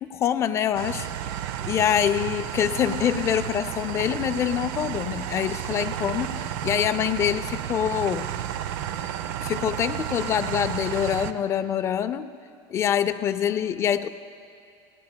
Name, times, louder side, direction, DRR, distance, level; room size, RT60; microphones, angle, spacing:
voice 1, 0.0-1.1 1.6-8.3 9.4-12.3 12.7-14.1, left 9 dB, 20° left, 11 dB, 0.4 m, -25 dB
sound 1, 0.7-11.3, right 10 dB, 70° right, 0.6 m, -32 dB
29.0 x 18.0 x 2.2 m, 2.4 s
cardioid pair, 165°, 12 cm